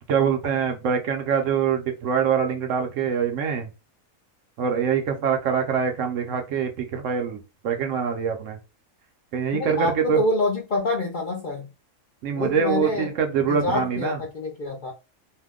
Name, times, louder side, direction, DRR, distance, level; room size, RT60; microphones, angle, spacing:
voice 1, 0.1-3.7 4.6-8.6 9.3-10.2 12.2-14.2, right 7 dB, 70° right, 1.0 m, -24 dB
voice 2, 9.5-11.7 12.4-13.1 13.5-14.9, left 2 dB, 55° left, 0.5 m, -26 dB
2.8 x 2.1 x 3.5 m
omnidirectional pair, 1.5 m